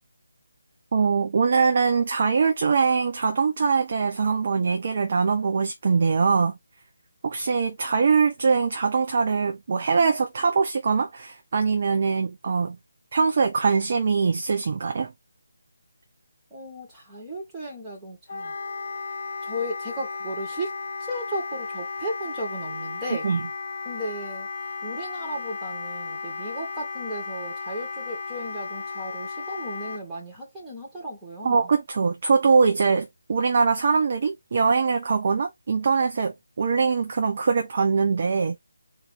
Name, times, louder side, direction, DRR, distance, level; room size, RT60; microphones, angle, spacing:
voice 1, 0.9-6.5 7.2-12.8 13.1-15.1 23.2-23.5 31.4-38.6, right 5 dB, 40° right, 0.6 m, -22 dB
voice 2, 16.5-18.5 19.4-20.7 21.1-23.3 23.9-24.5 24.8-31.7, equal, 5° right, 1.8 m, -35 dB
Wind instrument woodwind instrument, 18.3-30.0, left 4 dB, 30° left, 2.3 m, -34 dB
4.2 x 2.7 x 3.4 m
figure-of-eight pair, 150°, 0 cm